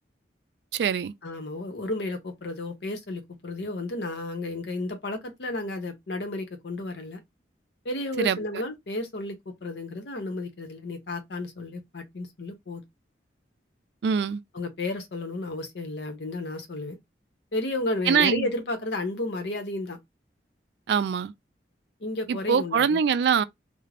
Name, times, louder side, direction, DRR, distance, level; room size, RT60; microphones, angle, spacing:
voice 1, 0.7-1.1 8.2-8.4 14.0-14.4 18.1-18.5 20.9-21.3 22.3-23.4, right 7 dB, 65° right, 0.3 m, -23 dB
voice 2, 1.2-7.2 7.8-12.8 14.5-17.0 17.5-20.0 22.0-23.0, left 2 dB, 70° left, 0.8 m, -32 dB
2.5 x 2.0 x 3.2 m
head